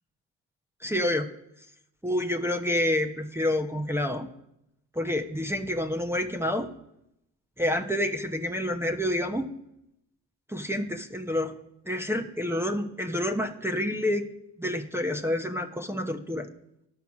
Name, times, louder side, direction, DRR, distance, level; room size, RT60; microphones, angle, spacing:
voice 1, 0.8-1.3 2.0-4.3 4.9-6.7 7.6-9.5 10.5-11.6 11.9-14.3 14.6-16.5, left 1 dB, 5° right, 2 dB, 0.9 m, -28 dB
10.5 x 5.8 x 6.1 m, 0.80 s
hypercardioid pair, 55°, 42 cm